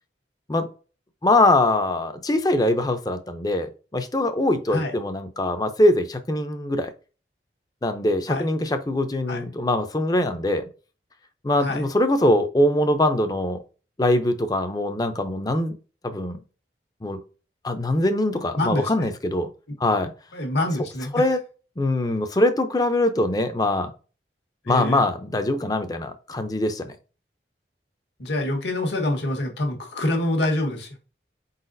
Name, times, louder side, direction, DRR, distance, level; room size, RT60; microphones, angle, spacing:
voice 1, 1.2-6.9 7.8-10.6 11.4-13.6 14.0-15.7 16.0-16.4 17.0-17.2 17.6-19.5 19.8-20.1 21.1-21.4 21.8-23.9 24.7-26.9, left 1 dB, 20° left, 8 dB, 0.5 m, -22 dB
voice 2, 18.5-18.9 20.3-21.1 24.6-25.0 28.2-30.9, left 1 dB, 75° left, 2 dB, 1.3 m, -25 dB
4.7 x 4.0 x 2.6 m, 0.35 s
head